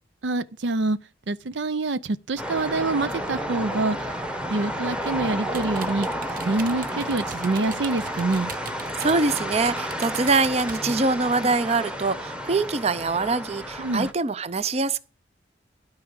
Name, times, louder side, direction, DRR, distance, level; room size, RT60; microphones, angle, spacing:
voice 1, 0.2-1.0 1.3-4.1 4.5-6.1 6.4-8.5 13.8-14.1, right 3 dB, 80° right, 0.6 m, -26 dB
sound 1, 2.4-14.1, equal, 5° right, 1.0 m, -31 dB
sound 2, 5.5-11.0, right 6 dB, 50° right, 1.0 m, -41 dB
voice 2, 9.0-15.0, right 3 dB, 35° right, 0.6 m, -24 dB
13.0 x 4.9 x 8.0 m
head